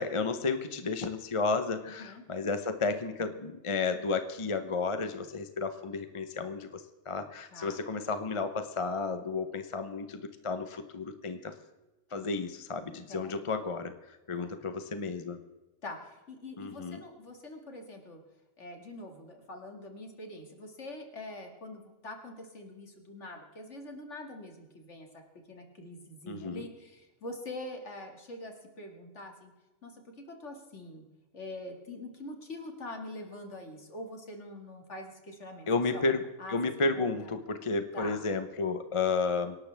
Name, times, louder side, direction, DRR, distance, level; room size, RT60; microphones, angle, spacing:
voice 1, 0.0-11.5 12.1-15.4 16.6-17.0 26.3-26.7 35.7-36.2 36.5-39.6, left 4 dB, 30° left, 9 dB, 0.8 m, -32 dB
voice 2, 1.8-2.2 7.5-7.8 12.1-12.3 13.1-13.4 14.4-14.5 15.8-18.2 18.6-25.1 25.5-29.5 29.8-31.1 31.3-35.7 35.9-36.0 36.4-36.6 36.8-37.1 37.9-38.2, left 2 dB, 60° left, 3 dB, 2.5 m, -44 dB
26.0 x 11.5 x 3.5 m, 1.1 s
omnidirectional pair, 1.4 m